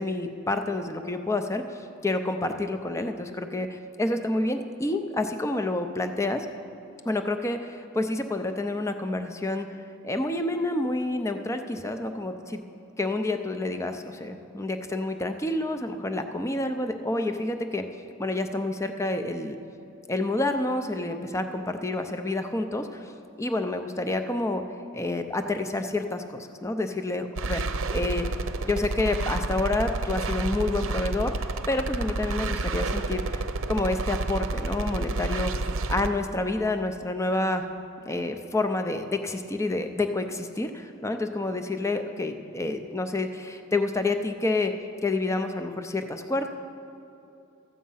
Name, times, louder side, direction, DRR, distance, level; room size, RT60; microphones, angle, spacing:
voice 1, 0.0-6.5 7.0-9.7 10.0-12.6 13.0-17.8 18.2-19.6 20.1-23.1 23.4-24.6 24.9-28.3 28.6-33.4 33.7-35.5 35.9-37.6 38.1-44.7 45.0-46.6, left 2 dB, 15° left, 7 dB, 0.5 m, -28 dB
sound 1, 27.4-36.1, right 2 dB, 70° right, 0.6 m, -30 dB
13.0 x 8.5 x 5.6 m, 2.8 s
head